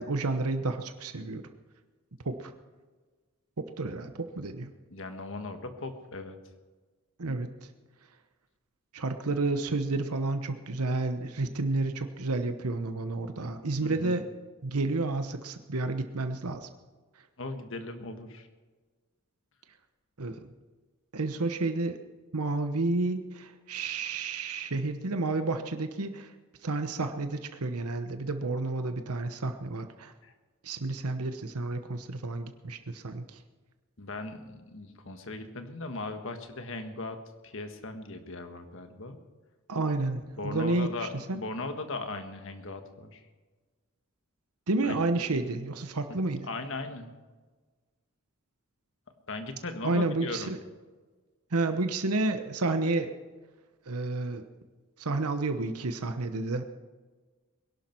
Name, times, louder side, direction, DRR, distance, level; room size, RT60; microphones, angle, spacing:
voice 1, 0.0-1.4 2.2-2.5 3.8-4.7 7.2-7.5 8.9-14.3 14.6-16.7 20.2-20.5 21.1-22.0 22.3-26.3 26.6-30.1 30.6-33.2 39.7-40.9 41.3-41.4 44.7-46.5 49.8-50.6 51.5-53.1 53.9-54.4 55.0-56.6, right 2 dB, 85° right, 8 dB, 1.0 m, -30 dB
voice 2, 4.9-6.4 13.8-14.2 17.4-18.5 30.2-30.3 34.0-37.2 37.4-39.2 40.4-43.2 44.8-45.0 46.1-46.2 46.4-47.1 49.3-50.5, left 2 dB, 60° left, 7 dB, 1.6 m, -38 dB
21.5 x 11.5 x 4.6 m, 1.4 s
head